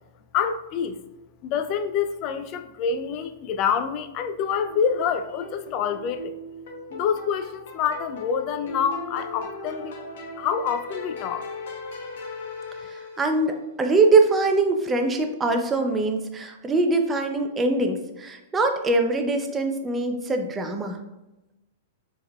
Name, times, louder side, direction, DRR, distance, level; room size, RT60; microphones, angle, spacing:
voice 1, 0.3-1.0 1.4-6.3 6.9-9.9 10.4-11.5, left 7 dB, 40° left, 9 dB, 0.3 m, -27 dB
sound 1, 4.7-13.6, left 2 dB, 70° left, 0.8 m, -38 dB
voice 2, 12.9-21.0, right 3 dB, 15° right, 4 dB, 0.5 m, -23 dB
4.3 x 3.4 x 2.2 m, 0.95 s
hypercardioid pair, 125°, 0 cm